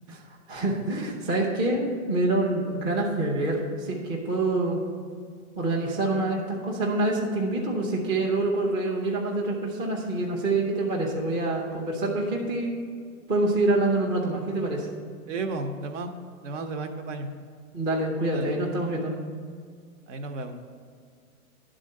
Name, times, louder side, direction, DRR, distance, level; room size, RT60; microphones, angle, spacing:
voice 1, 0.1-4.8 5.6-12.8 13.3-14.9 17.7-19.1, right 2 dB, 10° right, -3 dB, 0.5 m, -26 dB
voice 2, 15.3-16.1 16.4-17.3 18.3-18.5 20.1-20.5, right 3 dB, 60° right, 6 dB, 1.0 m, -33 dB
10.5 x 3.8 x 6.5 m, 2.1 s
hypercardioid pair, 145°, 43 cm